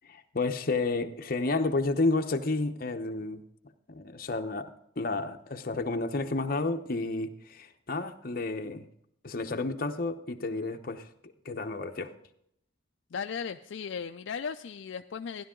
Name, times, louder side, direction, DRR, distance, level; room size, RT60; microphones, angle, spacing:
voice 1, 0.0-3.4 3.9-8.9 9.2-11.1 11.4-12.1, left 3 dB, 45° left, 6 dB, 0.9 m, -31 dB
voice 2, 13.1-15.4, left 6 dB, 70° left, 7 dB, 0.4 m, -36 dB
15.5 x 11.0 x 3.8 m, 0.73 s
head